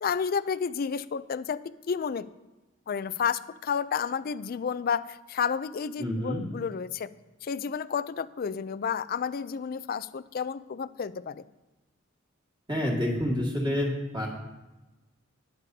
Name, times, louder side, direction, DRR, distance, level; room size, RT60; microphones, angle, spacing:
voice 1, 0.0-1.6 1.9-2.3 2.9-7.1 7.4-11.4, left 6 dB, 45° left, 15 dB, 0.4 m, -31 dB
voice 2, 6.0-6.4 12.7-14.3, left 1 dB, 25° right, -2 dB, 2.0 m, -28 dB
20.0 x 6.8 x 2.8 m, 1.1 s
head